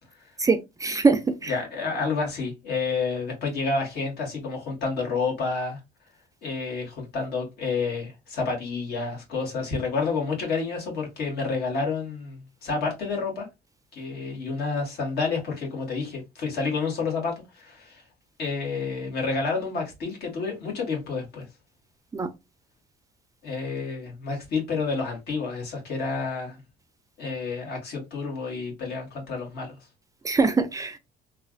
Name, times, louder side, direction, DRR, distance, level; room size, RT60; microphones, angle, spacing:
voice 1, 0.4-1.5 22.1-22.3 30.2-31.0, right 4 dB, 20° right, 0.3 m, -23 dB
voice 2, 1.5-5.8 6.4-13.5 13.9-18.0 18.4-21.4 23.4-26.6 27.2-29.7, left 4 dB, 70° left, 1.6 m, -29 dB
3.2 x 2.4 x 2.4 m
cardioid pair, 110°, 17 cm